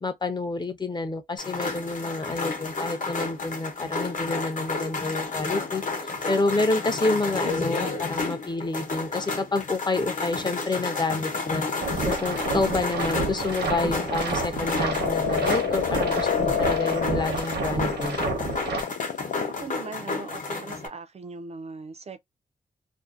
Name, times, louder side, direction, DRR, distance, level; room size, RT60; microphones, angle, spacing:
voice 1, 0.0-5.8 6.3-11.7 12.0-18.2, left 2 dB, 25° left, 0.5 m, -28 dB
sound 1, 1.4-20.9, left 3 dB, 50° left, 0.8 m, -31 dB
sound 2, 10.7-19.6, left 9 dB, 90° left, 0.4 m, -29 dB
sound 3, 11.8-18.8, right 3 dB, 75° right, 0.8 m, -30 dB
voice 2, 19.5-22.2, right 4 dB, 40° right, 0.4 m, -39 dB
2.5 x 2.1 x 2.4 m
wide cardioid pair, 150°, 17 cm